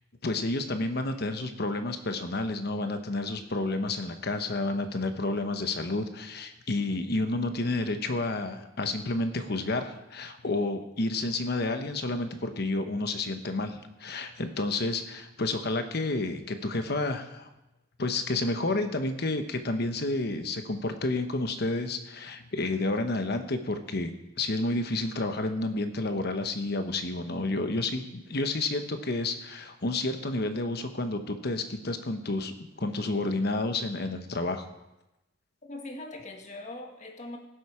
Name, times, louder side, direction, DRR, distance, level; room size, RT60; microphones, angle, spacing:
voice 1, 0.2-17.5 18.0-34.7, left 2 dB, 55° left, 7 dB, 1.1 m, -30 dB
voice 2, 35.6-37.4, left 2 dB, 40° left, 2 dB, 1.9 m, -41 dB
17.5 x 7.7 x 5.0 m, 0.94 s
head